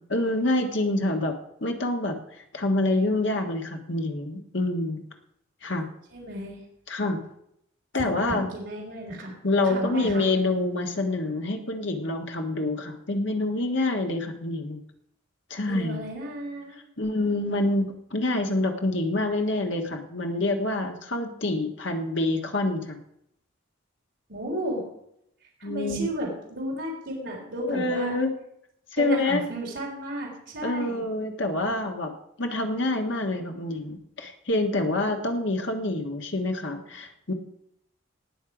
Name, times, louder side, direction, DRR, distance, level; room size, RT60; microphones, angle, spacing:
voice 1, 0.0-2.2 2.5-5.0 5.6-5.9 6.9-7.2 7.9-8.5 9.4-14.8 15.5-16.0 17.0-23.0 25.6-26.1 27.7-28.4 28.9-29.5 30.6-32.1 32.4-37.3, left 2 dB, 65° left, 4 dB, 1.4 m, -27 dB
voice 2, 6.1-6.6 8.0-9.3 9.7-10.3 15.7-16.8 24.3-24.8 25.6-28.2 29.0-31.0, right 1 dB, 60° right, -3 dB, 3.5 m, -33 dB
18.5 x 6.6 x 4.9 m, 0.76 s
head